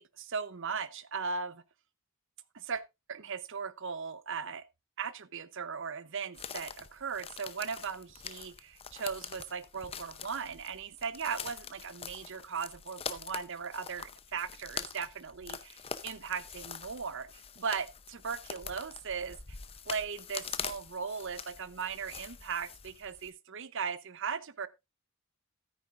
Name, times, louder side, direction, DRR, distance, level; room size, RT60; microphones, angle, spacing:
voice 1, 0.0-1.6 2.5-4.6 5.0-19.6 19.9-24.7, right 6 dB, 60° right, 0.8 m, -38 dB
sound 1, 6.3-23.3, left 7 dB, 25° left, 0.7 m, -44 dB
13.5 x 9.5 x 2.5 m
head